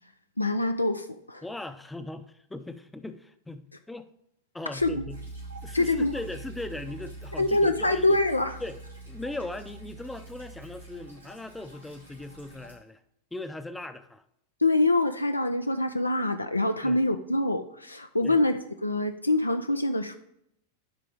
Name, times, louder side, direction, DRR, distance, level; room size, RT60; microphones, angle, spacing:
voice 1, 0.4-1.4 4.7-5.0 5.7-6.1 7.4-8.6 14.6-20.2, left 2 dB, 85° left, 8 dB, 0.4 m, -25 dB
voice 2, 1.4-4.1 4.5-5.2 5.6-8.2 8.6-8.8 9.1-13.0 13.3-14.2 16.8-17.0 18.2-18.4, left 2 dB, 5° left, 10 dB, 0.6 m, -39 dB
Piano, 4.8-11.1, right 2 dB, 60° left, 1.0 m, -43 dB
sound 1, 5.1-12.7, right 1 dB, 90° right, 3.5 m, -52 dB
10.0 x 3.8 x 4.7 m, 0.76 s
figure-of-eight pair, 90°, 0 cm